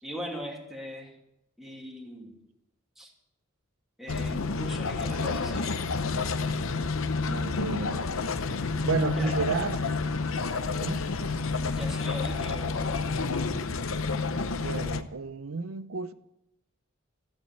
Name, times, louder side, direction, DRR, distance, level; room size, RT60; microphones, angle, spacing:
voice 1, 0.0-1.2 1.6-2.4 3.0-3.1 4.0-5.7 9.1-9.4 11.6-13.5, equal, ahead, 2.5 m, -40 dB
sound 1, 4.1-15.0, left 4 dB, 80° left, 0.8 m, -29 dB
voice 2, 7.3-8.0 8.8-9.8 10.8-11.1 14.5-16.1, right 5 dB, 90° right, 0.8 m, -32 dB
14.5 x 8.1 x 9.4 m
head